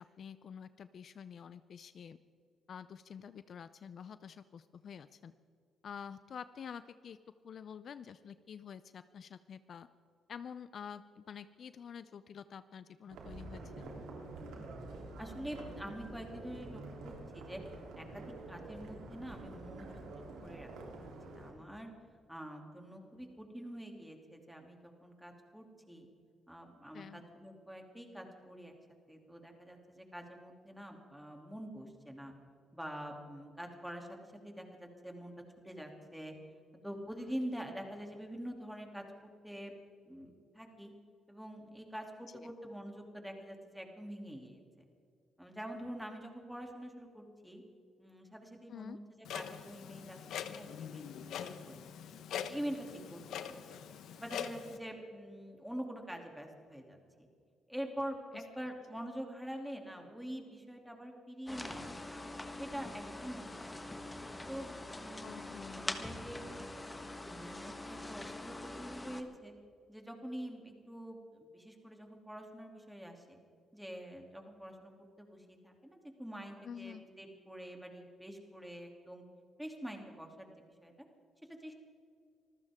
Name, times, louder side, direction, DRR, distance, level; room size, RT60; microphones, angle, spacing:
voice 1, 0.0-2.2 2.7-5.3 5.8-7.2 7.4-9.9 10.3-13.9 26.9-27.2 42.3-42.5 48.7-49.0 58.3-58.4 65.2-65.9 76.6-77.1, left 7 dB, 55° left, 13 dB, 0.5 m, -48 dB
sound 1, 13.1-21.5, right 2 dB, 85° right, 3.3 m, -47 dB
voice 2, 15.2-17.6 18.0-20.7 21.0-21.1 21.3-21.9 22.3-26.1 26.5-28.7 29.1-32.3 32.7-35.3 35.6-36.3 36.8-39.7 40.0-40.9 41.3-44.6 45.4-47.6 48.0-51.8 52.4-53.8 54.2-57.3 57.7-62.3 62.6-64.0 64.5-65.4 65.7-66.4 67.2-69.5 69.9-73.4 73.7-79.2 79.6-80.5 80.8-80.9 81.6-81.7, equal, 5° right, 2 dB, 2.8 m, -46 dB
Clock, 49.2-54.8, left 8 dB, 75° left, 0.9 m, -43 dB
sound 2, 61.5-69.2, left 2 dB, 15° left, 1.5 m, -44 dB
25.5 x 15.0 x 3.6 m, 2.3 s
cardioid pair, 90°, 0 cm